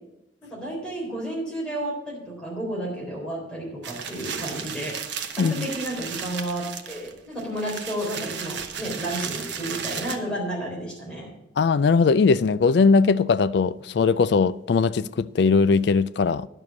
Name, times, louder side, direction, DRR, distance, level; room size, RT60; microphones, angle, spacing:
voice 1, 0.4-5.0 5.3-11.3, right 1 dB, 5° left, 3.8 m, -32 dB
sound 1, 3.8-10.2, right 7 dB, 65° right, 1.0 m, -34 dB
voice 2, 11.6-16.5, left 4 dB, 60° left, 0.3 m, -20 dB
11.0 x 6.7 x 7.1 m
head